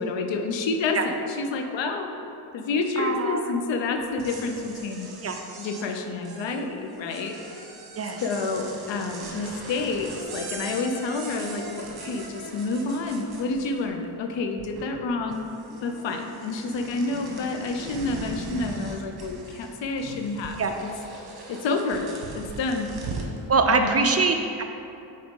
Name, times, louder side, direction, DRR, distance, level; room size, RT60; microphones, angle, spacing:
voice 1, 0.0-2.1 2.5-5.1 5.6-7.7 8.2-15.4 15.8-20.9 21.5-22.9 23.8-24.1, left 3 dB, 75° left, 5 dB, 0.7 m, -29 dB
voice 2, 3.0-3.5 5.2-5.4 7.9-8.2 20.6-20.8 23.5-24.6, right 4 dB, 35° right, 5 dB, 0.4 m, -23 dB
sound 1, 4.0-14.0 14.3-15.1 15.3-23.4, right 3 dB, 55° right, 1.1 m, -40 dB
5.1 x 4.2 x 5.2 m, 2.7 s
cardioid pair, 85°, 45 cm